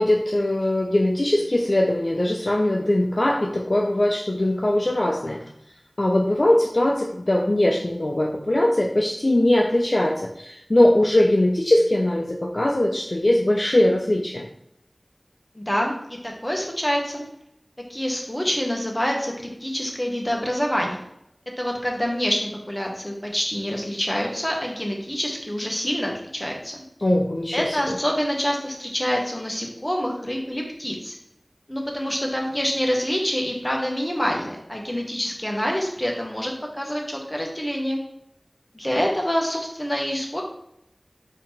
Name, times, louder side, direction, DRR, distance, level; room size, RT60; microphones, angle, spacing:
voice 1, 0.0-5.4 6.0-14.5 27.0-28.0, left 1 dB, 55° left, 0 dB, 0.5 m, -21 dB
voice 2, 15.5-15.9 16.2-17.2 17.9-21.0 21.6-26.8 27.5-31.1 31.7-38.0 38.7-40.4, equal, 20° left, 0 dB, 1.1 m, -26 dB
4.2 x 2.9 x 4.4 m, 0.77 s
wide cardioid pair, 40°, 0 cm